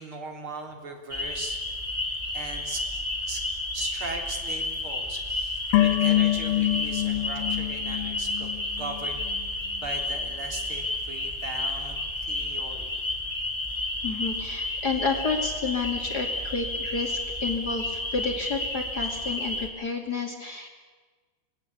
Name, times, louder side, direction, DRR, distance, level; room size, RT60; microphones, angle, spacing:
voice 1, 0.0-1.6 2.3-2.8 3.2-3.4 3.7-13.0, right 3 dB, 30° right, 4 dB, 3.5 m, -39 dB
sound 1, 1.1-19.7, left 2 dB, 10° left, 1.6 m, -31 dB
sound 2, 5.7-9.0 9.3-9.4, left 15 dB, 85° left, 2.0 m, -25 dB
voice 2, 14.0-20.7, left 4 dB, 45° left, 3 dB, 1.3 m, -30 dB
26.5 x 20.5 x 8.5 m, 1.4 s
omnidirectional pair, 5.8 m